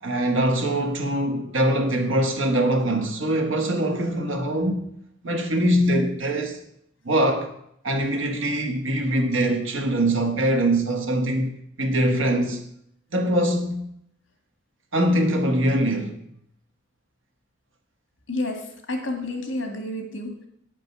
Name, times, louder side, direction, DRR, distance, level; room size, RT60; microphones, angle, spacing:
voice 1, 0.0-4.8 5.2-6.6 7.0-7.6 7.8-11.5 11.8-12.6 13.1-13.8 14.9-16.2, right 1 dB, 85° right, 1.5 m, -23 dB
voice 2, 18.3-18.6 18.9-20.5, left 2 dB, 70° left, 1.9 m, -29 dB
8.9 x 5.2 x 6.8 m
head